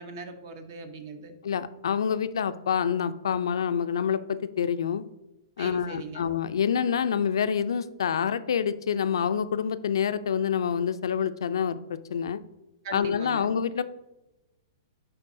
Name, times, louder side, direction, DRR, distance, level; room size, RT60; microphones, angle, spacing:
voice 1, 0.0-1.3 5.6-6.3 12.8-13.5, right 3 dB, 50° right, 7 dB, 0.8 m, -40 dB
voice 2, 1.4-5.0 5.6-12.4 12.9-13.8, left 7 dB, 85° left, 12 dB, 0.4 m, -27 dB
10.0 x 3.6 x 2.6 m, 0.97 s
hypercardioid pair, 150°, 2 cm